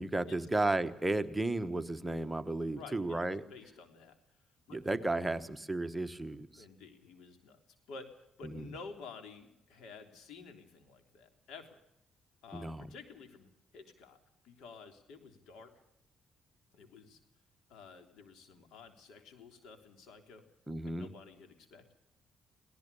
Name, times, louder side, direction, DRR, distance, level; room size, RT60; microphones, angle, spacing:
voice 1, 0.0-3.4 4.7-6.6 8.4-8.7 12.5-12.9 20.7-21.1, right 2 dB, 10° right, 9 dB, 1.2 m, -34 dB
voice 2, 2.7-4.1 4.7-4.8 6.5-7.6 7.9-11.8 12.4-14.2 14.4-15.7 16.7-17.2 17.7-20.4 20.8-21.9, left 4 dB, 85° left, 7 dB, 3.4 m, -52 dB
22.0 x 18.0 x 7.0 m, 0.83 s
cardioid pair, 90°, 0 cm